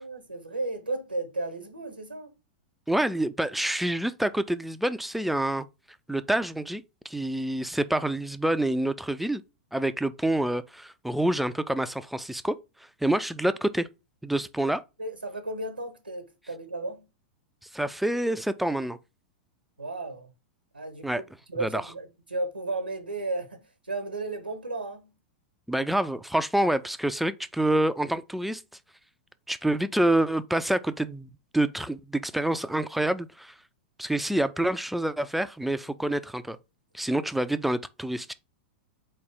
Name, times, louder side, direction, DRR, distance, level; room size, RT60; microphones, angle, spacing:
voice 1, 0.0-2.3 15.0-17.1 19.8-20.3 20.7-21.2 21.5-25.1, right 2 dB, 90° right, 0.9 m, -34 dB
voice 2, 2.9-5.7 6.1-9.4 9.7-12.6 13.0-13.9 14.2-14.8 17.7-19.0 21.0-21.2 21.6-21.8 25.7-28.6 29.5-33.5 34.0-36.6 36.9-38.3, right 1 dB, ahead, 0.3 m, -27 dB
4.2 x 3.3 x 3.6 m
figure-of-eight pair, 95°, 5 cm